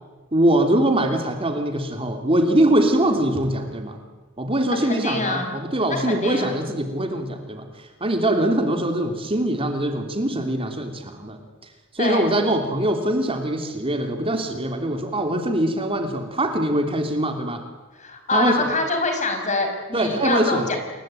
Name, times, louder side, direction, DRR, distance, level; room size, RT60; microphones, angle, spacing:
voice 1, 0.3-4.0 4.4-11.4 11.9-17.6 18.3-18.7 19.9-20.7, right 1 dB, 30° right, 5 dB, 2.9 m, -22 dB
voice 2, 4.8-5.6 6.0-6.6 12.0-12.3 18.0-20.8, left 3 dB, 35° left, 5 dB, 5.3 m, -25 dB
28.5 x 22.0 x 9.2 m, 1.2 s
head